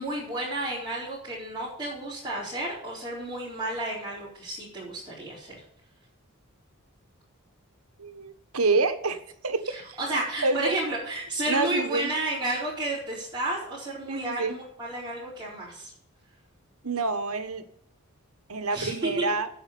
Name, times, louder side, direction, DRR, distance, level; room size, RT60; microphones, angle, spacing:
voice 1, 0.0-5.6 9.6-15.9 18.7-19.1, right 2 dB, 20° right, -10 dB, 4.6 m, -32 dB
voice 2, 8.0-9.2 9.4-10.7 11.5-12.1 14.1-14.5 16.8-17.6 18.5-19.5, right 3 dB, 80° right, 8 dB, 1.4 m, -28 dB
9.8 x 7.1 x 8.5 m, 0.67 s
head